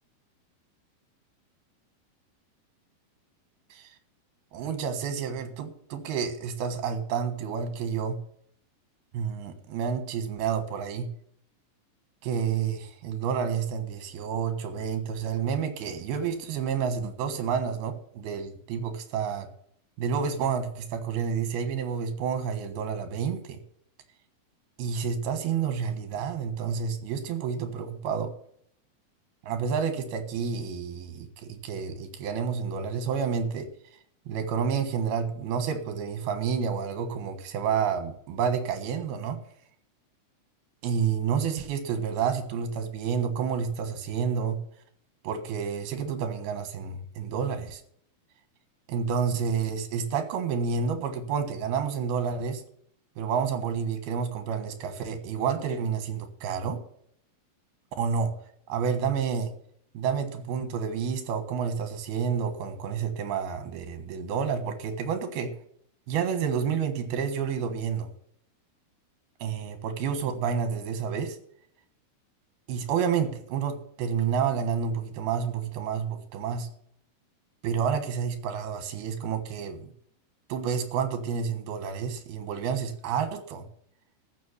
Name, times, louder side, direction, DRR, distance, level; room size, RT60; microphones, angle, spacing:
voice 1, 4.5-8.2 9.1-11.1 12.2-19.5 20.0-23.6 24.8-28.3 29.4-33.7 34.3-39.4 40.8-44.6 45.2-47.8 48.9-52.6 53.2-56.8 58.0-58.3 58.7-59.5 59.9-65.5 66.1-68.1 69.4-71.4 72.7-76.7 77.6-79.9 80.5-83.7, right 6 dB, 80° right, 8 dB, 3.4 m, -29 dB
13.5 x 6.5 x 7.2 m, 0.65 s
omnidirectional pair, 4.5 m